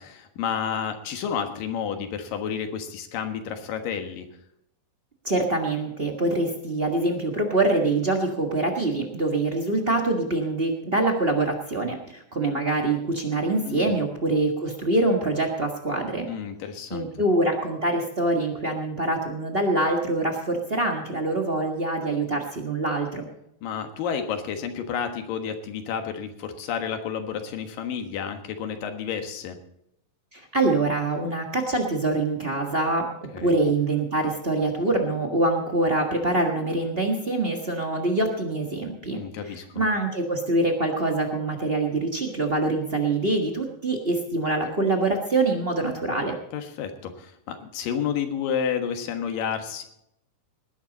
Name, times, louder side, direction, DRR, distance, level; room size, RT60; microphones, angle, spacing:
voice 1, 0.0-4.3 13.7-13.9 16.3-17.1 23.6-29.6 33.3-33.6 39.1-39.8 46.5-49.9, left 7 dB, 90° left, 6 dB, 3.2 m, -30 dB
voice 2, 5.2-16.3 16.9-23.3 30.3-33.1 33.4-39.2 39.5-46.4, right 2 dB, 50° right, 2 dB, 0.7 m, -25 dB
19.0 x 10.5 x 4.1 m, 0.78 s
omnidirectional pair, 3.8 m